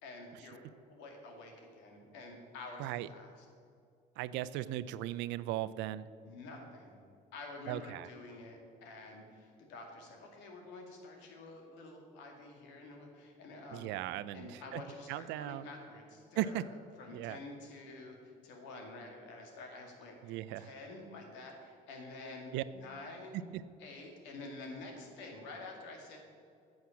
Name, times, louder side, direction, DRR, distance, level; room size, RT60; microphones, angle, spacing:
voice 1, 0.0-3.5 6.2-7.0 7.3-13.9 14.3-16.6 17.0-23.4 23.8-26.2, left 2 dB, 80° left, 2 dB, 2.2 m, -49 dB
voice 2, 4.2-6.1 7.7-8.1 13.7-14.8 15.1-15.7 16.4-16.6 17.1-17.4 20.2-20.7 22.5-22.6 23.5-23.6, right 14 dB, 80° right, 16 dB, 0.5 m, -37 dB
9.5 x 6.5 x 7.1 m, 2.4 s
supercardioid pair, 75°, 18 cm